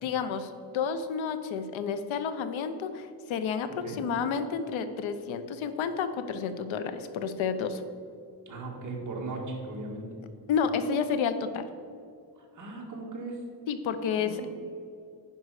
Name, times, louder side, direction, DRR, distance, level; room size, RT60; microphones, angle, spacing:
voice 1, 0.0-7.8 10.5-11.6 13.7-14.5, left 6 dB, 85° left, 10 dB, 0.8 m, -30 dB
voice 2, 8.4-10.1 12.4-13.4 14.2-14.5, right 2 dB, 40° right, -1 dB, 1.8 m, -38 dB
10.0 x 5.5 x 4.8 m, 2.3 s
cardioid pair, 160°, 45 cm